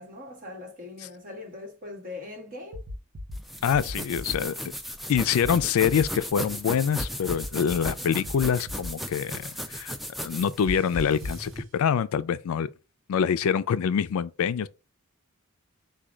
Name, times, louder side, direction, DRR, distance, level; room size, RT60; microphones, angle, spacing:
voice 1, 0.0-2.8, left 2 dB, 40° right, 1.4 m, -41 dB
sound 1, 2.7-3.4 3.7-4.4 5.1-6.1 7.0-7.9 8.2-8.9 10.6-11.4, left 1 dB, 60° right, 0.6 m, -35 dB
sound 2, 3.3-11.6, equal, ahead, 0.3 m, -36 dB
voice 2, 3.6-4.6 5.1-12.7 13.1-14.7, left 7 dB, 80° left, 0.3 m, -25 dB
4.8 x 2.3 x 4.3 m
head